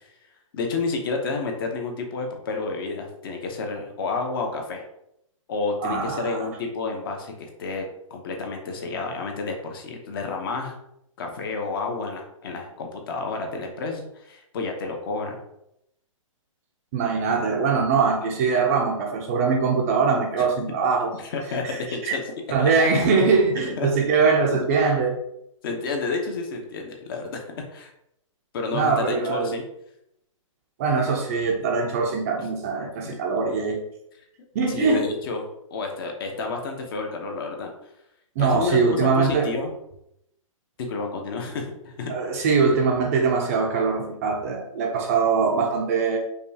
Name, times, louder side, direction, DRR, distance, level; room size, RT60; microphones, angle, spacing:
voice 1, 0.5-4.8 5.5-7.8 8.1-10.7 11.2-15.4 20.4-20.5 21.2-22.2 22.6-22.9 23.8-23.9 24.5-24.6 25.6-27.9 28.5-29.6 32.4-32.5 34.7-37.7 38.4-39.7 40.8-42.1, left 4 dB, 40° left, 2 dB, 0.8 m, -30 dB
voice 2, 5.8-6.5 16.9-21.1 21.6-22.2 22.5-25.2 28.7-29.6 30.8-33.8 34.5-35.1 38.4-39.5 42.1-46.2, right 5 dB, 25° right, 2 dB, 0.4 m, -22 dB
5.1 x 2.3 x 2.8 m, 0.79 s
hypercardioid pair, 155°, 17 cm